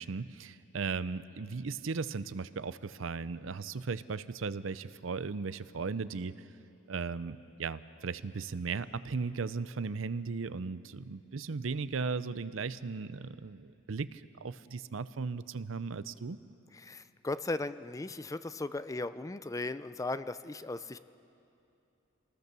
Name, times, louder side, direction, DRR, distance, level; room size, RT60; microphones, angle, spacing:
voice 1, 0.0-6.3 6.9-16.4, right 4 dB, 70° right, 15 dB, 0.6 m, -37 dB
voice 2, 16.7-21.0, left 2 dB, 15° left, 13 dB, 0.4 m, -37 dB
26.5 x 19.0 x 6.8 m, 2.7 s
head